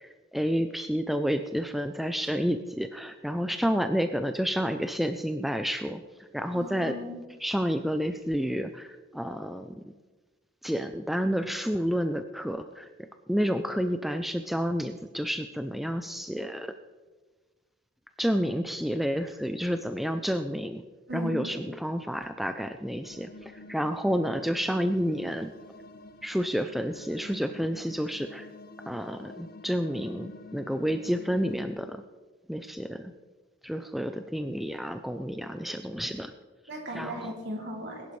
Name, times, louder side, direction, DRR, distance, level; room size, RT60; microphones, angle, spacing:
voice 1, 0.0-6.0 6.3-6.9 7.4-9.8 10.6-12.9 13.3-16.7 18.2-20.8 21.1-25.5 26.2-28.5 28.9-32.0 32.5-33.1 33.6-36.3 36.9-37.3, equal, ahead, 7 dB, 0.4 m, -30 dB
voice 2, 6.5-7.2 21.1-21.6 36.7-38.2, left 1 dB, 60° right, -1 dB, 3.0 m, -37 dB
sound 1, 23.0-31.5, left 2 dB, 50° left, 0.7 m, -49 dB
21.0 x 11.0 x 3.2 m, 1.3 s
head